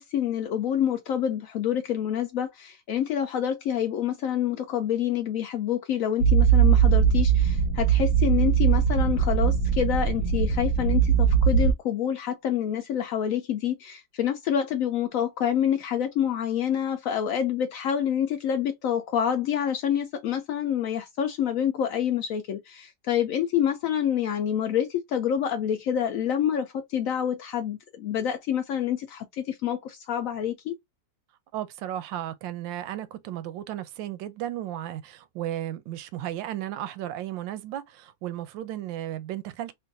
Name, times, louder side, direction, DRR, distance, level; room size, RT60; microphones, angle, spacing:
voice 1, 0.0-30.7, left 9 dB, 85° left, 0.7 m, -27 dB
sound 1, 6.2-11.7, right 7 dB, 65° right, 0.9 m, -21 dB
voice 2, 31.5-39.7, right 12 dB, 85° right, 1.3 m, -34 dB
3.8 x 2.5 x 2.6 m
omnidirectional pair, 2.0 m